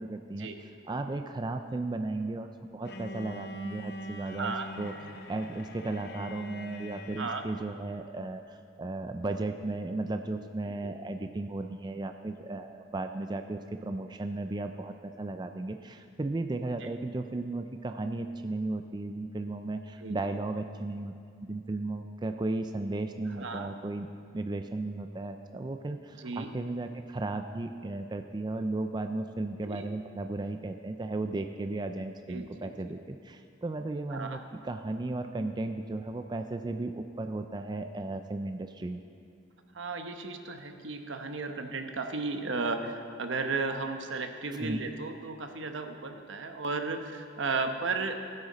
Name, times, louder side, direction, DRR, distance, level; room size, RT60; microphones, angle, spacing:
voice 1, 0.0-4.9 5.3-24.1 24.3-39.0 44.5-44.8, right 2 dB, 20° right, 7 dB, 0.4 m, -35 dB
Bowed string instrument, 2.9-7.7, left 1 dB, 55° left, 0.7 m, -43 dB
voice 2, 4.2-4.7 7.2-7.4 10.8-10.9 20.0-20.2 23.4-23.7 26.2-26.5 29.6-29.9 32.3-32.7 34.1-34.4 39.7-48.2, right 3 dB, 80° right, 6 dB, 0.9 m, -34 dB
16.5 x 9.9 x 4.2 m, 2.4 s
head